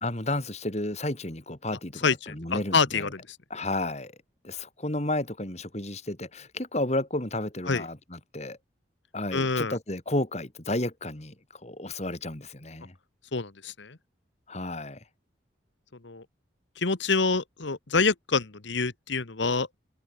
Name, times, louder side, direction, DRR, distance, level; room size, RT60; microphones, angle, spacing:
voice 1, 0.0-3.1 3.5-4.1 4.4-8.6 9.1-12.9 14.5-15.0, left 1 dB, 35° left, 2.5 m, -32 dB
voice 2, 2.0-3.4 7.7-7.8 9.3-9.8 13.3-14.0 16.0-16.2 16.8-19.7, left 4 dB, 70° left, 1.3 m, -27 dB
head